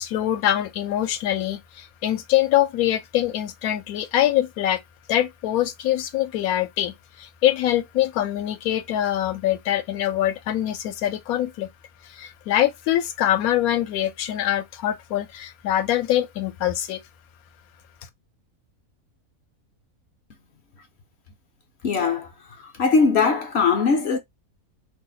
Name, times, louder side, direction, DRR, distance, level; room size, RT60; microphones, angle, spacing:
voice 1, 0.0-4.8 5.1-11.7 12.1-17.0, left 12 dB, 80° left, 1.0 m, -24 dB
voice 2, 21.8-22.3 22.6-24.2, left 5 dB, 60° left, 0.8 m, -20 dB
2.7 x 2.1 x 3.8 m
omnidirectional pair, 1.5 m